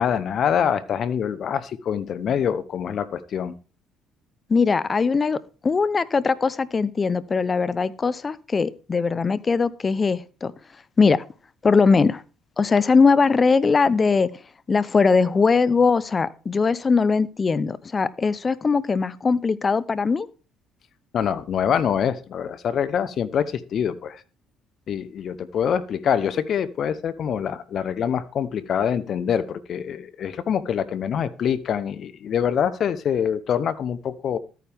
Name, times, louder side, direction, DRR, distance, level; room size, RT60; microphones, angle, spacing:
voice 1, 0.0-3.5 21.1-24.2 24.9-34.4, left 8 dB, 55° left, 15 dB, 1.0 m, -25 dB
voice 2, 4.5-10.5 11.0-11.2 11.6-12.2 12.6-14.3 14.7-20.3, left 4 dB, 35° left, 18 dB, 0.8 m, -20 dB
13.5 x 9.4 x 3.6 m, 0.35 s
supercardioid pair, 70°, 0 cm